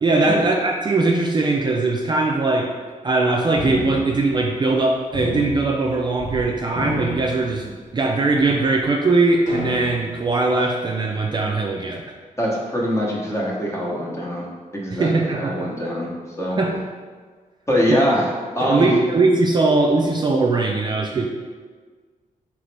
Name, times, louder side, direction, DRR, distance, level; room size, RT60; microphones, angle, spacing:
voice 1, 0.0-2.7 3.0-12.0 14.9-15.7 16.6-16.7 17.9-18.0 18.6-21.3, right 3 dB, 30° right, 0 dB, 0.4 m, -20 dB
sound 1, 3.6-4.8 5.1-6.4 6.7-8.0 8.6-8.7 9.5-10.3, left 2 dB, 65° left, 1.1 m, -31 dB
voice 2, 12.4-14.5 14.7-16.1 16.4-16.6 17.7-18.3 18.5-18.9, equal, 20° left, -3 dB, 0.9 m, -23 dB
3.9 x 3.0 x 3.3 m, 1.5 s
cardioid pair, 95°, 14 cm